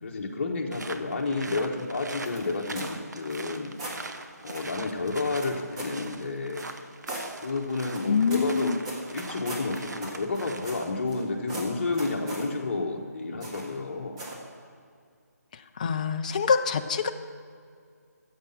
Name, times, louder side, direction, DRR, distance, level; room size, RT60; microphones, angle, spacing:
voice 1, 0.0-3.7 4.4-6.7 7.4-8.8 9.0-14.2, left 3 dB, 45° left, 2 dB, 1.5 m, -30 dB
sound 1, 0.7-11.0, right 3 dB, 80° right, 1.0 m, -42 dB
sound 2, 2.2-3.0 3.3-4.0 4.5-4.7 5.4-6.0 6.6-7.3 7.9-11.2 11.5-12.5 13.4-13.8 14.2-14.5, right 1 dB, 20° right, 1.8 m, -40 dB
voice 2, 8.1-8.8 15.5-17.1, left 5 dB, 25° left, 7 dB, 0.5 m, -25 dB
14.0 x 7.9 x 5.9 m, 2.2 s
figure-of-eight pair, 165°, 9 cm